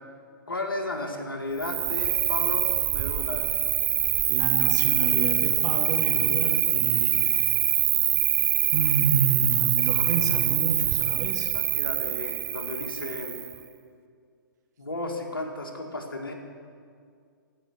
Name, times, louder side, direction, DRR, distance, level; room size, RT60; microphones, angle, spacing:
voice 1, 0.5-3.5 11.5-13.4 14.8-16.3, left 2 dB, 90° left, 2 dB, 2.3 m, -34 dB
Cricket, 1.6-13.6, right 14 dB, 20° right, 0.4 m, -24 dB
voice 2, 4.3-7.5 8.1-8.2 8.7-11.5, right 5 dB, 55° right, 4 dB, 1.9 m, -29 dB
15.5 x 6.1 x 9.5 m, 2.2 s
hypercardioid pair, 125°, 11 cm